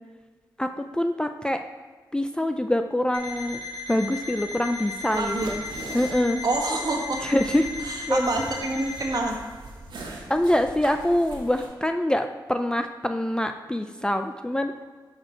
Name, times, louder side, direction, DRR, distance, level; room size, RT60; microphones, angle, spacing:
voice 1, 0.6-1.6 2.1-3.6 3.9-5.6 5.9-6.4 7.2-7.7 8.1-8.4 10.3-14.7, left 1 dB, 10° left, 7 dB, 0.4 m, -25 dB
Alarm, 3.1-9.2, left 3 dB, 70° left, 2.0 m, -36 dB
voice 2, 5.1-5.6 6.4-7.2 7.8-9.3, right 2 dB, 55° right, -1 dB, 1.6 m, -27 dB
sound 1, 5.1-11.7, right 2 dB, 80° right, 1.6 m, -42 dB
6.3 x 6.2 x 4.3 m, 1.5 s
cardioid pair, 60°, 8 cm